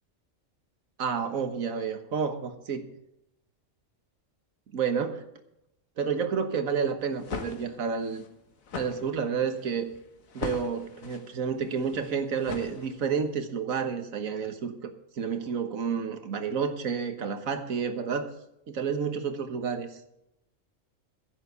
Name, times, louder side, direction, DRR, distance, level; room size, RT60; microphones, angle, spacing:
voice 1, 1.0-2.9 4.7-5.2 6.0-8.2 8.7-9.9 10.3-18.3 18.7-20.0, right 6 dB, 85° right, 8 dB, 1.7 m, -30 dB
sound 1, 7.0-13.3, left 5 dB, 85° left, 1.7 m, -40 dB
10.5 x 8.1 x 8.0 m, 0.82 s
omnidirectional pair, 1.4 m